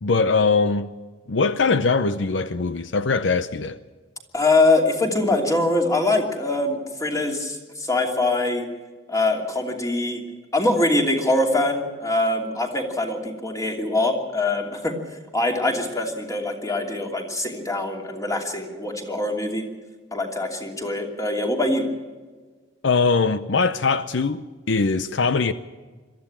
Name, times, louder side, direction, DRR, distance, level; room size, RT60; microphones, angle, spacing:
voice 1, 0.0-0.9 1.3-3.8 22.8-25.5, left 4 dB, 75° left, 0.7 m, -21 dB
voice 2, 4.3-8.7 9.1-10.2 10.5-15.0 15.3-19.6 20.1-21.9, left 2 dB, 20° left, 2.9 m, -23 dB
22.0 x 14.0 x 8.9 m
head